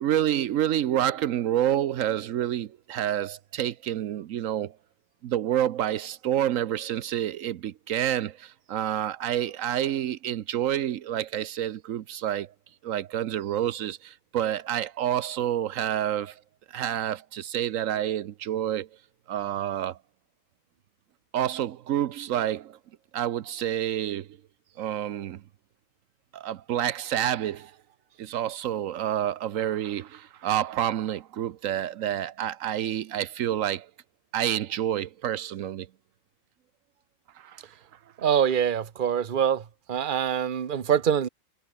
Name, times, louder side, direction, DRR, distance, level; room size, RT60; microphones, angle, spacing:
voice 1, 0.0-4.8 5.2-12.5 12.8-16.4 16.7-18.9 19.3-20.0 21.3-22.8 23.1-24.3 24.8-25.4 26.3-27.7 28.2-33.9 34.3-35.9 37.4-37.6, right 11 dB, 80° right, 1.1 m, -28 dB
voice 2, 38.2-41.3, right 8 dB, 40° right, 1.1 m, -25 dB
omnidirectional pair, 1.4 m